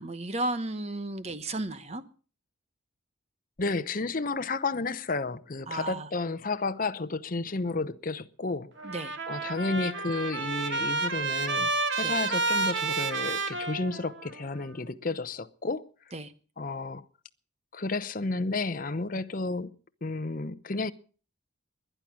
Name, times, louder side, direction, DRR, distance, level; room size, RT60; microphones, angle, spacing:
voice 1, 0.0-2.0 5.7-6.1 8.8-9.2 12.0-12.2 16.1-16.3, right 2 dB, 30° right, 1.1 m, -34 dB
voice 2, 3.6-8.9 9.3-11.7 12.0-15.9 16.6-17.0 17.7-19.7 20.0-20.9, left 3 dB, 40° left, 0.8 m, -32 dB
Trumpet, 8.8-14.4, right 3 dB, 60° right, 2.0 m, -30 dB
21.0 x 10.0 x 6.1 m
head